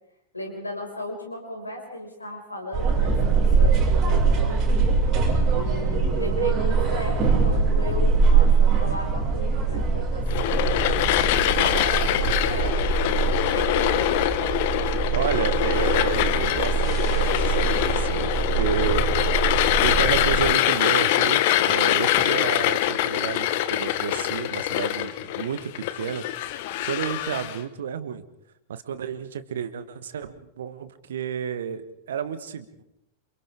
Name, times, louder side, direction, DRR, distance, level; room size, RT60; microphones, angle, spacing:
voice 1, 0.3-4.8 5.5-10.8 11.4-13.2 13.5-14.1, left 1 dB, 80° left, 2 dB, 5.8 m, -35 dB
sound 1, 2.7-20.4, right 5 dB, 35° right, 6.5 m, -23 dB
sound 2, 10.3-27.6, left 13 dB, 50° left, 1.3 m, -24 dB
voice 2, 12.2-12.7 15.1-19.0 19.8-26.2 26.8-28.2 28.7-32.8, right 8 dB, 65° right, 13 dB, 1.4 m, -31 dB
28.5 x 28.5 x 3.7 m, 0.82 s
figure-of-eight pair, 90°, 0 cm